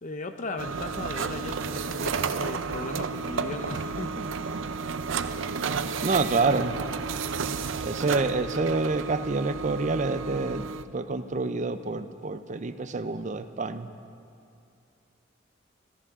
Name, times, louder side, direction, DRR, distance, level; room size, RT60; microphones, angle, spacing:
voice 1, 0.0-4.2, left 2 dB, 40° left, 7 dB, 0.7 m, -37 dB
sound 1, 0.6-10.8, right 5 dB, 80° right, 0.5 m, -32 dB
voice 2, 6.0-6.8 7.8-10.7 10.9-13.9, right 3 dB, 40° right, 11 dB, 0.6 m, -27 dB
28.0 x 13.5 x 3.7 m, 2.5 s
head